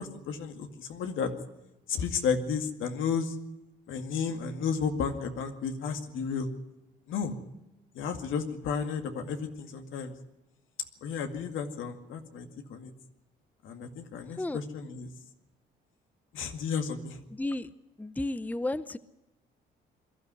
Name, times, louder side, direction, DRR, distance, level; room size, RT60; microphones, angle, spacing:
voice 1, 0.0-1.3 1.9-3.4 3.9-6.5 7.1-7.4 7.9-10.1 11.0-12.9 13.6-15.1 16.3-17.2, left 6 dB, 80° left, 6 dB, 2.2 m, -33 dB
voice 2, 17.3-17.7 18.0-19.0, left 2 dB, 10° left, 15 dB, 0.7 m, -32 dB
22.0 x 13.0 x 9.7 m, 0.98 s
cardioid pair, 90°, 20 cm